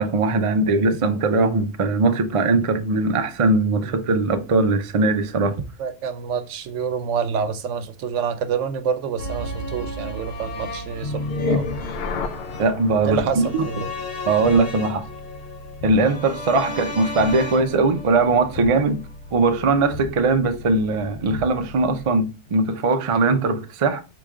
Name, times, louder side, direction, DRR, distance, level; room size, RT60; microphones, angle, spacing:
voice 1, 0.0-5.6 12.6-13.9 14.3-15.0 15.8-19.0 19.3-24.0, right 3 dB, 55° right, 0.3 m, -20 dB
voice 2, 5.8-11.7 13.0-13.9, right 6 dB, 75° right, 1.0 m, -27 dB
sound 1, 9.2-19.3 19.6-19.7, left 1 dB, 45° left, 1.6 m, -35 dB
sound 2, 11.0-22.1, left 3 dB, 65° left, 0.7 m, -33 dB
4.8 x 2.9 x 3.5 m
omnidirectional pair, 1.3 m